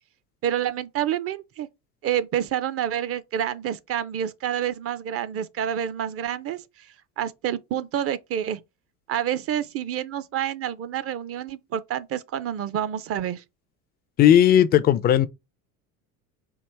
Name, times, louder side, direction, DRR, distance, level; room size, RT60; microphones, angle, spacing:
voice 1, 0.4-1.7 2.0-6.9 7.2-8.6 9.1-13.4, right 10 dB, 30° right, 0.5 m, -28 dB
voice 2, 14.2-15.3, left 10 dB, 25° left, 0.3 m, -16 dB
4.7 x 2.5 x 3.4 m
hypercardioid pair, 80°, 45 cm